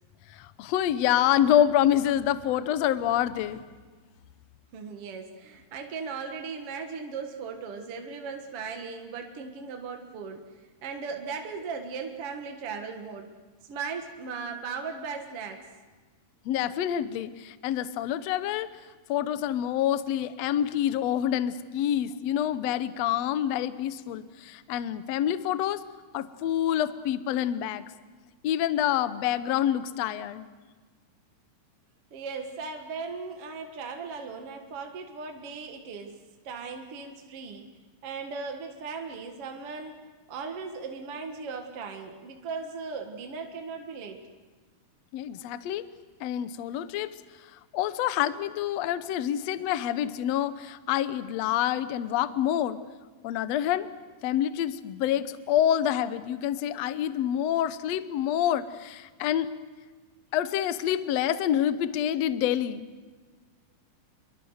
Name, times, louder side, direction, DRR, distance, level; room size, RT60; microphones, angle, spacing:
voice 1, 0.3-3.6 16.4-18.7 19.1-25.8 26.1-27.8 28.4-30.5 45.1-45.8 46.2-47.1 47.7-52.8 53.2-53.9 54.2-59.5 60.3-62.9, left 11 dB, 70° left, 13 dB, 1.6 m, -27 dB
voice 2, 4.7-10.5 10.8-13.3 13.7-15.6 32.1-36.2 36.4-37.7 38.0-39.9 40.3-44.2, right 5 dB, 50° right, 3 dB, 2.2 m, -37 dB
28.5 x 23.0 x 6.5 m, 1.4 s
omnidirectional pair, 4.0 m